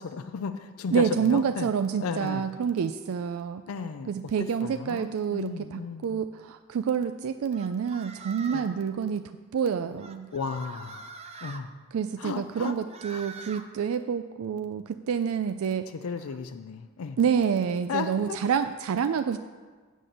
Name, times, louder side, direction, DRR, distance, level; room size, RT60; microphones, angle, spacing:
voice 1, 0.0-1.7 2.0-2.4 3.7-6.2 8.5-8.7 10.3-11.7 12.2-12.7 13.1-13.2 16.0-17.2 17.9-18.4, left 5 dB, 90° left, 8 dB, 0.4 m, -34 dB
voice 2, 0.9-3.6 4.1-10.3 11.9-15.9 17.2-19.4, right 7 dB, 85° right, 10 dB, 0.4 m, -28 dB
sound 1, 7.5-8.8 10.0-11.6 12.5-13.7, right 4 dB, 30° right, 0.5 m, -44 dB
7.5 x 6.4 x 6.7 m, 1.4 s
head